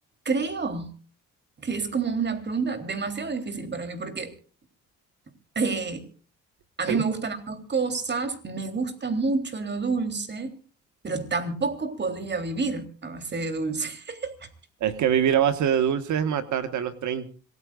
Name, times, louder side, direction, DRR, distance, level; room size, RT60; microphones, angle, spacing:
voice 1, 0.3-0.9 1.6-4.3 5.6-6.1 6.8-10.5 11.0-14.5, right 4 dB, 35° right, 7 dB, 3.6 m, -29 dB
voice 2, 14.8-17.3, right 9 dB, 70° right, 10 dB, 1.6 m, -24 dB
26.0 x 18.5 x 2.5 m, 0.39 s
cardioid pair, 90°, 30 cm